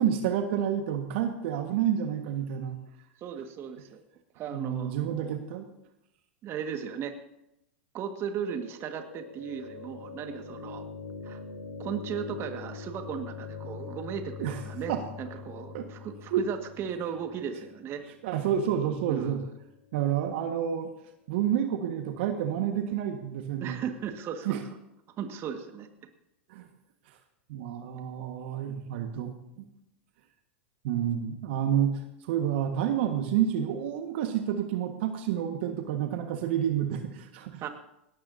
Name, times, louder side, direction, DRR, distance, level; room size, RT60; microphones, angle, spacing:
voice 1, 0.0-2.8 4.5-5.7 14.4-14.6 14.9-15.0 15.7-15.9 16.3-16.4 18.2-19.4 19.9-20.9 21.3-23.8 24.4-24.6 26.5-26.7 27.5-29.6 30.8-37.7, right 9 dB, 65° right, 5 dB, 1.6 m, -29 dB
voice 2, 3.2-4.0 4.4-5.3 6.4-7.2 7.9-10.9 11.2-11.4 11.8-14.9 15.2-18.0 19.1-19.5 23.6-24.6 25.2-25.9 37.6-37.7, right 8 dB, 40° right, 6 dB, 1.8 m, -36 dB
sound 1, 8.2-20.2, left 5 dB, 90° left, 2.6 m, -44 dB
19.5 x 17.5 x 2.8 m, 0.85 s
hypercardioid pair, 100°, 7 cm